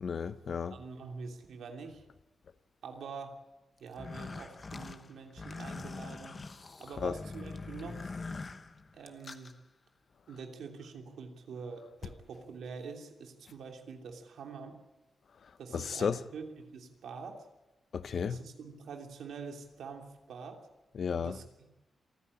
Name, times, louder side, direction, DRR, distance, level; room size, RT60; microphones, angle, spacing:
voice 1, 0.0-0.8 7.0-7.2 15.7-16.2 17.9-18.4 20.9-21.4, left 6 dB, 50° left, 0.7 m, -33 dB
voice 2, 0.7-2.0 2.8-3.4 3.8-6.4 6.8-8.4 8.9-9.5 10.3-14.8 15.6-17.5 18.2-20.7 21.1-21.7, right 5 dB, 85° right, 3.0 m, -45 dB
sound 1, 3.9-9.5, left 3 dB, 30° left, 1.1 m, -43 dB
27.5 x 9.7 x 9.9 m
wide cardioid pair, 170°, 0 cm